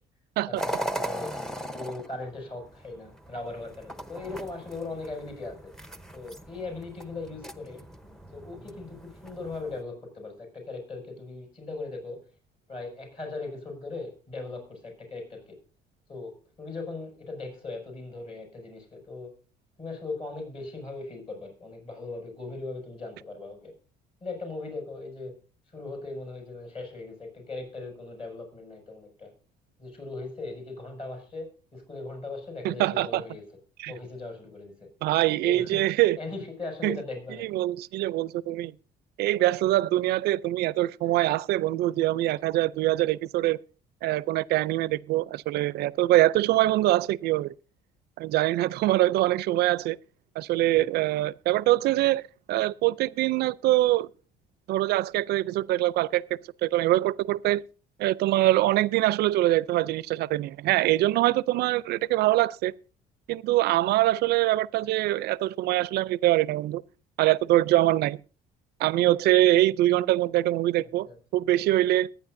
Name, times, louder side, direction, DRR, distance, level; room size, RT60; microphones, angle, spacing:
voice 1, 0.5-1.3 1.7-5.7 6.1-7.8 8.3-12.2 12.7-15.6 16.1-19.3 19.8-23.7 24.2-25.4 25.7-29.3 29.8-33.4 33.9-34.9 35.4-35.8 36.2-37.6 41.0-41.2 50.7-50.9 71.1-71.2, left 3 dB, 35° left, 6.4 m, -39 dB
sound 1, 0.6-9.8, right 1 dB, 5° left, 0.8 m, -39 dB
voice 2, 32.6-33.2 33.8-33.9 35.0-36.2 36.8-37.0 37.4-38.7 39.2-43.6 44.0-47.5 48.2-50.0 50.4-52.2 52.5-54.1 54.7-56.2 56.6-57.6 58.0-62.7 63.3-66.8 67.2-68.2 68.8-71.1 71.3-72.1, right 15 dB, 75° right, 0.5 m, -24 dB
22.5 x 9.4 x 2.6 m
cardioid pair, 110°, 17 cm